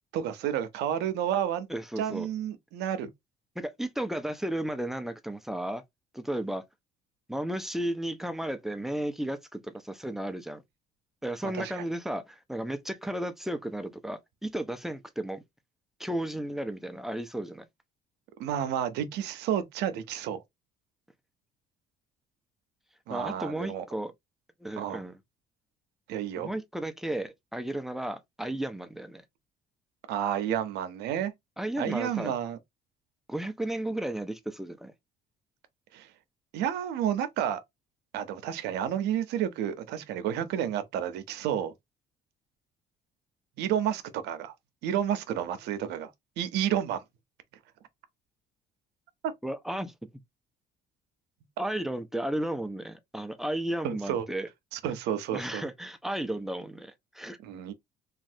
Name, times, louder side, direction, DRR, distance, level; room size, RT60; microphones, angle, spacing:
voice 1, 0.1-1.7 2.0-3.1 11.4-11.8 18.4-20.4 23.1-23.8 24.8-25.0 26.1-26.5 30.1-31.3 31.8-32.6 35.9-36.1 36.5-37.6 38.1-41.7 43.6-44.5 44.8-46.1 46.4-47.0 53.8-54.2 54.7-55.6 57.4-57.7, right 10 dB, 85° right, 0.7 m, -30 dB
voice 2, 1.7-2.3 3.6-5.8 6.1-6.6 7.3-10.6 11.2-15.4 16.0-17.7 23.1-24.1 24.6-25.2 26.4-29.2 31.6-32.3 33.3-34.9 49.4-49.9 51.6-54.5 55.3-57.4, right 1 dB, ahead, 0.5 m, -34 dB
3.2 x 2.4 x 2.6 m
cardioid pair, 110°, 17 cm